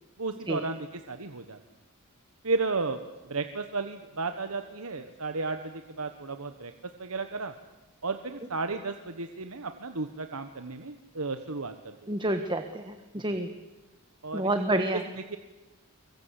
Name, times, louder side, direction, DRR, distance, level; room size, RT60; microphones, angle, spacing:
voice 1, 0.2-1.6 2.4-6.7 7.0-7.5 8.0-11.9 13.3-13.4 14.2-14.9 15.1-15.4, right 3 dB, 70° right, 7 dB, 1.4 m, -33 dB
voice 2, 12.1-13.5 14.3-15.0, right 1 dB, 20° right, 7 dB, 1.4 m, -29 dB
26.0 x 23.5 x 8.4 m, 1.1 s
head